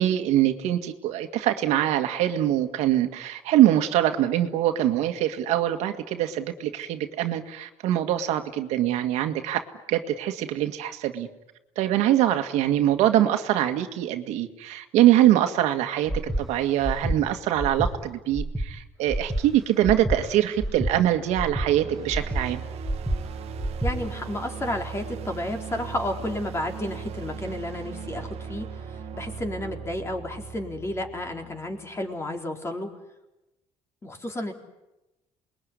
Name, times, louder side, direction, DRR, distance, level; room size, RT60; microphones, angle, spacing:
voice 1, 0.0-11.3 11.8-22.6, right 12 dB, 90° right, 7 dB, 1.9 m, -23 dB
Breathing, 16.1-16.4 16.8-17.2 17.6-17.9 18.3-18.7 19.1-19.4 19.8-20.2 20.6-20.9 21.3-21.7 22.1-22.4 22.8-23.2 23.6-23.9, right 1 dB, ahead, 2.7 m, -28 dB
sound 1, 21.0-32.0, right 6 dB, 65° right, 1.6 m, -38 dB
voice 2, 23.8-32.9 34.0-34.5, left 1 dB, 25° left, 4 dB, 4.0 m, -32 dB
28.0 x 21.5 x 9.7 m, 0.98 s
cardioid pair, 115°, 11 cm